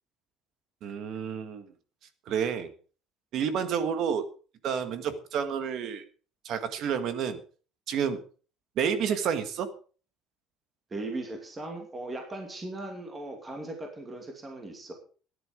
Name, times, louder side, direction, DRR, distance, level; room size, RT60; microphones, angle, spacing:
voice 1, 0.8-1.6 2.3-2.7 3.3-4.2 4.6-6.0 6.4-7.4 7.9-8.2 8.8-9.7, right 7 dB, 45° right, 10 dB, 1.6 m, -29 dB
voice 2, 10.9-14.9, right 2 dB, 15° right, 3 dB, 2.5 m, -38 dB
13.5 x 11.0 x 5.1 m, 0.39 s
cardioid pair, 180°, 0 cm